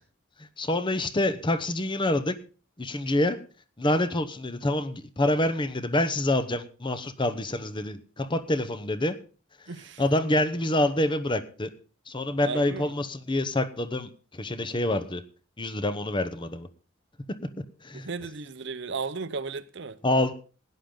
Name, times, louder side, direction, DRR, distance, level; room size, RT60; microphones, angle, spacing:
voice 1, 0.6-2.4 2.8-3.4 3.8-9.2 10.0-11.7 12.1-15.2 15.6-16.7 17.8-18.1 20.0-20.3, left 1 dB, 25° left, 0.9 m, -26 dB
voice 2, 9.7-10.0 12.4-12.9 17.9-20.0, right 4 dB, 65° right, 0.8 m, -35 dB
16.5 x 10.5 x 3.9 m
head